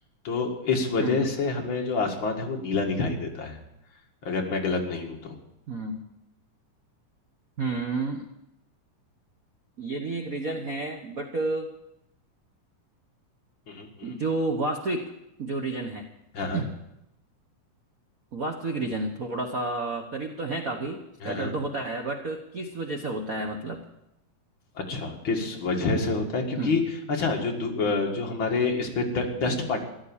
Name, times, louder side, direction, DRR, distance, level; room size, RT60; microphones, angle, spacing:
voice 1, 0.2-3.6 4.2-5.4 13.7-13.9 16.3-16.6 21.2-21.5 24.8-26.8 27.2-29.8, left 3 dB, 40° left, 1 dB, 2.6 m, -27 dB
voice 2, 1.0-1.3 5.7-6.0 7.6-8.3 9.8-11.7 14.0-15.1 15.4-16.1 16.5-16.7 18.3-23.8 26.6-26.8 27.8-28.0, right 2 dB, 85° right, 3 dB, 0.7 m, -31 dB
14.5 x 11.5 x 7.2 m, 0.85 s
omnidirectional pair, 3.6 m